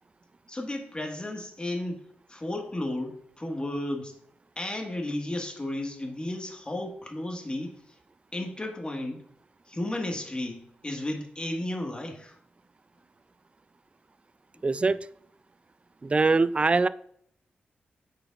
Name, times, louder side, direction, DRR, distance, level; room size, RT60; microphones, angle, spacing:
voice 1, 0.5-4.2 4.6-7.8 8.3-9.2 9.7-12.4 14.5-14.6, left 1 dB, 25° left, 2 dB, 1.6 m, -33 dB
voice 2, 14.6-15.0 16.0-16.9, right 3 dB, 30° right, 17 dB, 0.3 m, -22 dB
8.6 x 5.0 x 2.4 m, 0.66 s
cardioid pair, 50°, 4 cm